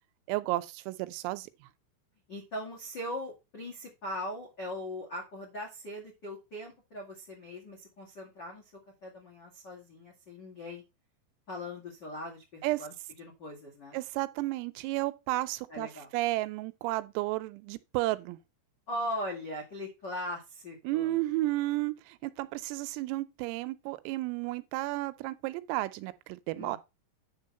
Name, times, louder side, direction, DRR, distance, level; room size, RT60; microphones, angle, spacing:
voice 1, 0.3-1.7 12.6-12.8 13.9-18.4 20.8-26.8, right 18 dB, 90° right, 3.4 m, -32 dB
voice 2, 2.3-8.7 9.0-10.8 11.5-14.0 15.7-16.1 18.9-21.2 26.5-26.8, left 1 dB, 65° left, 1.0 m, -40 dB
9.8 x 3.6 x 6.5 m
omnidirectional pair, 5.9 m